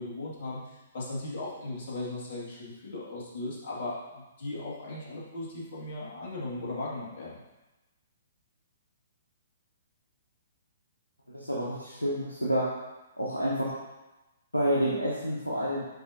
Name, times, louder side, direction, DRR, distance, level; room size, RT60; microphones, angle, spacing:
voice 1, 0.0-7.4, left 2 dB, 50° left, -5 dB, 2.2 m, -37 dB
voice 2, 11.3-12.7 13.2-13.7 14.5-15.8, equal, 90° left, -6 dB, 1.1 m, -28 dB
10.5 x 4.1 x 2.8 m, 1.1 s
figure-of-eight pair, 120°, 0 cm